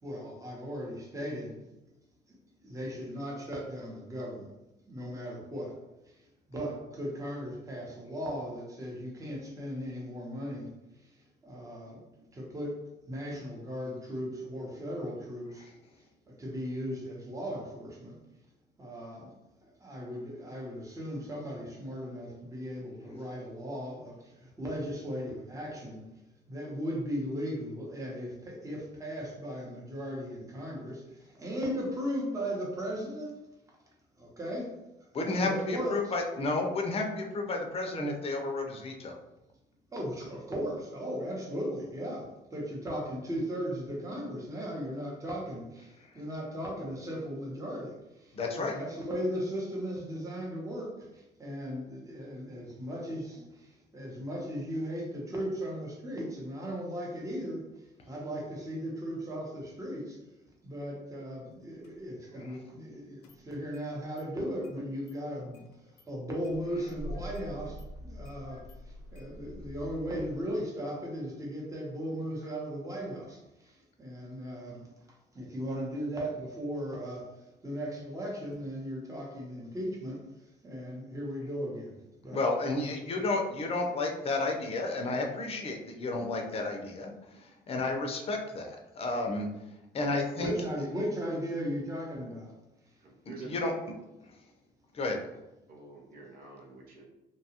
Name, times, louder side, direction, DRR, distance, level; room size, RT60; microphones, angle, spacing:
voice 1, 0.0-1.7 2.3-4.6 4.9-5.8 6.0-12.1 12.3-18.2 18.8-19.4 19.6-26.1 26.5-33.4 34.2-36.1 39.9-82.4 82.7-82.9 90.4-92.5 92.8-93.0, equal, 20° right, -2 dB, 0.8 m, -37 dB
voice 2, 35.1-39.2 48.3-48.8 82.3-89.5 89.9-90.5 93.3-93.7 94.9-95.2, left 2 dB, 35° left, 2 dB, 0.6 m, -32 dB
Engine starting, 61.8-61.9 63.2-63.9 64.2-64.3 64.6-64.7 65.1-65.2 65.5-66.1 66.4-70.4, equal, 80° left, 0.6 m, -45 dB
voice 3, 93.0-93.7 95.7-97.0, right 3 dB, 60° right, -1 dB, 0.7 m, -48 dB
2.8 x 2.3 x 2.8 m, 0.95 s
cardioid pair, 110°, 17 cm